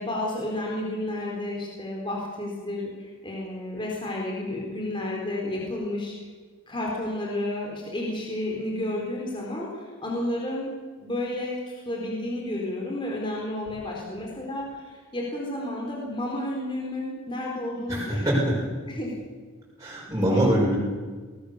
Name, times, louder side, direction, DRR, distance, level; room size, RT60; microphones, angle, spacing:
voice 1, 0.0-6.1 6.7-10.7 11.0-18.4 18.9-19.1, left 1 dB, 25° left, -2 dB, 4.2 m, -31 dB
voice 2, 17.9-18.6 19.8-20.8, right 1 dB, 15° right, -7 dB, 6.3 m, -23 dB
23.0 x 19.0 x 6.8 m, 1.5 s
head